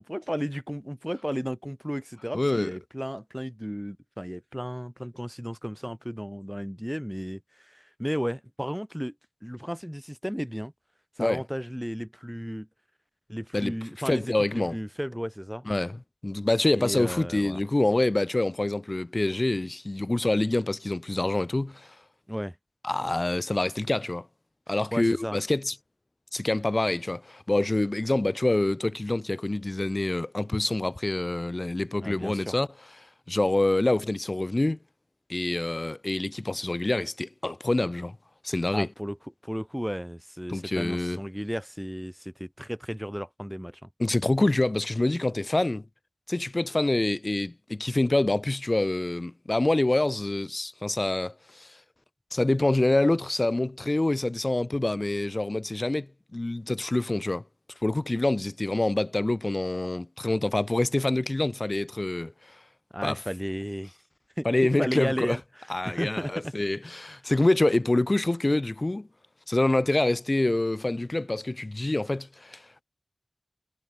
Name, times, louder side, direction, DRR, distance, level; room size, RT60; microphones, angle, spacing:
voice 1, 0.1-9.1 9.4-10.7 11.2-12.7 13.3-15.7 16.7-17.6 22.3-22.6 24.7-25.4 32.0-32.5 38.7-39.2 39.4-43.9 62.9-63.9 64.4-64.5 64.8-65.4 65.8-66.5, equal, ahead, 3.5 m, -34 dB
voice 2, 2.3-2.7 11.2-11.4 13.5-13.7 14.1-14.8 15.7-21.9 22.8-24.3 24.7-25.7 26.3-32.7 33.3-34.8 35.3-38.2 38.4-38.9 40.5-41.2 44.0-45.8 46.3-51.8 52.3-57.4 57.8-62.6 63.0-63.2 64.4-65.4 65.7-69.1 69.5-72.8, left 2 dB, 35° left, 0.9 m, -26 dB
wide cardioid pair, 70°, 0 cm